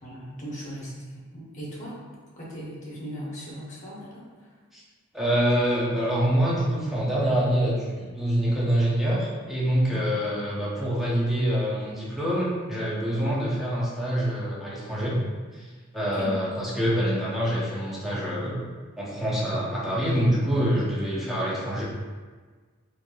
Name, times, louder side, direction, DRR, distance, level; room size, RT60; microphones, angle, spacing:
voice 1, 0.0-2.0 2.4-4.5 9.9-10.2 16.0-16.4, equal, 35° left, -6 dB, 0.8 m, -39 dB
voice 2, 5.1-15.2 15.5-15.7 15.9-18.7 19.0-21.8, equal, ahead, -7 dB, 0.6 m, -25 dB
3.1 x 2.6 x 2.2 m, 1.5 s
head